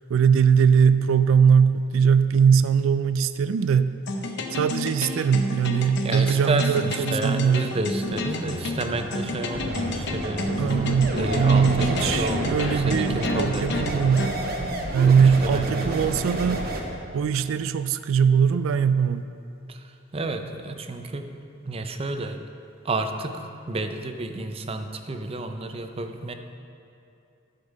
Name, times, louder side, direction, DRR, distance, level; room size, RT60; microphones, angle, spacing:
voice 1, 0.1-3.9 4.5-7.8 10.6-14.3 14.9-16.6 17.1-19.2, right 6 dB, 85° right, 13 dB, 0.3 m, -21 dB
sound 1, 4.1-14.3, left 2 dB, 60° left, 0.7 m, -30 dB
voice 2, 6.0-14.3 15.0-16.2 16.5-16.8 19.7-21.3 21.6-22.4 22.8-26.3, right 2 dB, 30° right, 7 dB, 0.5 m, -31 dB
sound 2, 8.0-13.3, equal, 5° left, 2.4 m, -39 dB
sound 3, 9.5-16.8, right 1 dB, 50° right, 1.0 m, -30 dB
12.0 x 5.3 x 5.2 m, 2.7 s
head